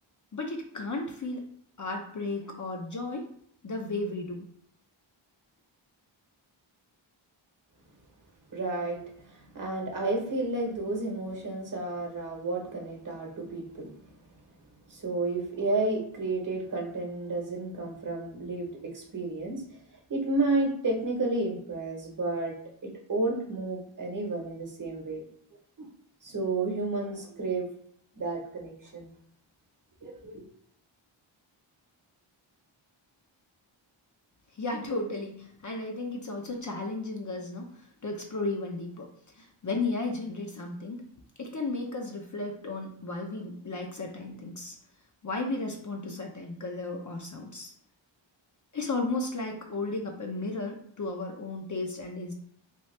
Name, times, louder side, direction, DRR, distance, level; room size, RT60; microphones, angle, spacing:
voice 1, 0.3-1.4 1.8-3.3 3.6-4.5 34.5-39.1 39.4-41.1 41.4-44.8 45.2-47.7 48.7-52.3, left 2 dB, 40° left, 2 dB, 0.6 m, -34 dB
voice 2, 8.5-9.0 9.3-13.9 14.9-19.6 20.1-22.5 22.8-25.2 25.8-25.9 26.2-27.7 28.1-29.1 30.0-30.4, right 2 dB, 40° right, 1 dB, 1.0 m, -31 dB
3.0 x 2.4 x 3.2 m, 0.66 s
cardioid pair, 55°, 49 cm